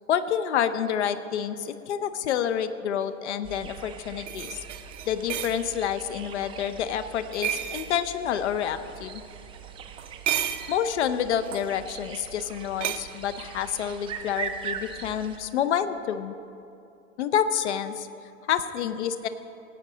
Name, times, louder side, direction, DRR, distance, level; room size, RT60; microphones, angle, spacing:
voice 1, 0.1-4.6 5.1-9.2 10.7-16.3 17.2-18.1 18.4-19.3, left 9 dB, 55° left, 11 dB, 0.7 m, -28 dB
sound 1, 3.4-15.4, right 7 dB, 15° right, 0.5 m, -41 dB
sound 2, 3.5-3.6 4.3-5.6 7.3-7.9 10.0-10.7 11.4-11.7 12.8-13.0, right 11 dB, 60° right, 0.7 m, -31 dB
17.0 x 9.0 x 3.8 m, 2.6 s
figure-of-eight pair, 90°, 40 cm